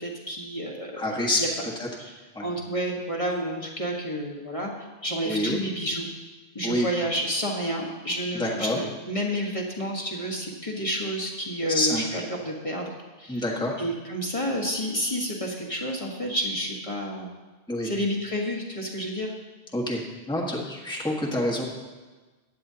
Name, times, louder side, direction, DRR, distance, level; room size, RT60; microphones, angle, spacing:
voice 1, 0.0-1.1 1.4-1.5 2.0-2.1 2.4-6.1 6.5-12.9 13.2-13.4 13.8-17.3 17.8-19.3, equal, 30° left, -1 dB, 1.5 m, -30 dB
voice 2, 1.0-1.4 1.8-1.9 2.3-2.4 5.2-5.6 6.6-6.9 8.3-8.8 11.7-12.2 13.3-13.8 17.7-17.9 19.7-20.0 20.3-21.6, left 1 dB, 5° left, -3 dB, 1.4 m, -27 dB
16.0 x 9.8 x 2.8 m, 1.3 s
omnidirectional pair, 1.1 m